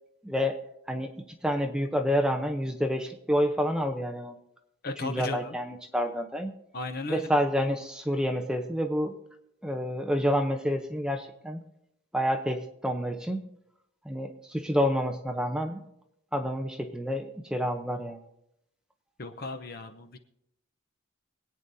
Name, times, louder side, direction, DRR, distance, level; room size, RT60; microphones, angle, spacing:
voice 1, 0.2-0.6 0.9-1.1 1.4-4.4 5.0-6.5 7.1-9.2 9.6-11.6 12.1-13.5 14.1-15.8 16.3-18.2, equal, 5° right, 4 dB, 0.7 m, -28 dB
voice 2, 4.8-5.5 6.7-7.3 19.2-20.2, left 3 dB, 50° left, 7 dB, 0.8 m, -36 dB
25.0 x 9.0 x 2.7 m, 0.81 s
head